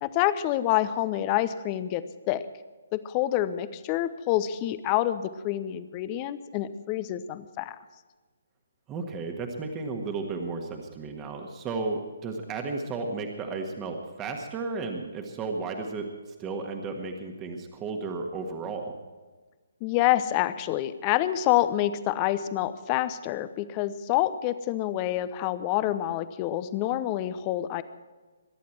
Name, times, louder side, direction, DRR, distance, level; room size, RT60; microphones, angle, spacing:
voice 1, 0.0-2.4 2.9-7.8 19.8-27.8, left 13 dB, 25° left, 14 dB, 0.9 m, -27 dB
voice 2, 8.9-18.9, right 3 dB, 20° right, 3 dB, 1.7 m, -34 dB
22.5 x 11.5 x 4.6 m, 1.3 s
figure-of-eight pair, 135°, 0 cm